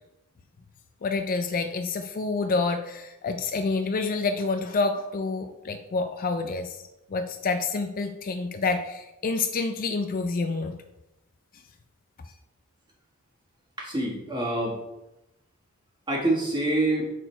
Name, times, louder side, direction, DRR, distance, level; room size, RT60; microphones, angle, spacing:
voice 1, 1.0-6.8 7.1-10.7, left 3 dB, 40° left, 7 dB, 0.4 m, -28 dB
voice 2, 13.8-14.8 16.1-17.1, right 1 dB, 20° right, -3 dB, 1.6 m, -26 dB
6.2 x 4.2 x 4.4 m, 0.93 s
head